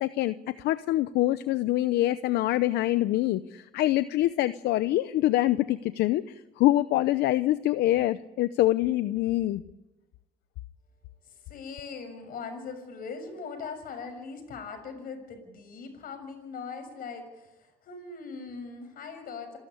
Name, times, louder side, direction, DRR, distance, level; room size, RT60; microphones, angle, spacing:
voice 1, 0.0-9.6, left 15 dB, 80° left, 14 dB, 0.7 m, -25 dB
voice 2, 11.2-19.6, left 5 dB, 60° left, 7 dB, 6.6 m, -40 dB
27.5 x 13.0 x 9.9 m, 1.1 s
cardioid pair, 110°, 17 cm